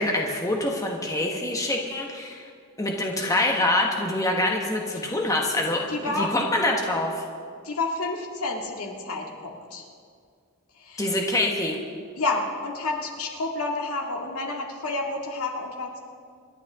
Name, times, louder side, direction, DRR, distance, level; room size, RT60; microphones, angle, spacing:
voice 1, 0.0-2.5 2.8-7.2 11.0-11.8, left 1 dB, 15° left, 0 dB, 1.3 m, -25 dB
voice 2, 5.9-6.3 7.6-9.9 10.7-11.1 12.2-16.0, left 2 dB, 70° left, 0 dB, 2.2 m, -30 dB
27.5 x 11.5 x 3.7 m, 2.1 s
head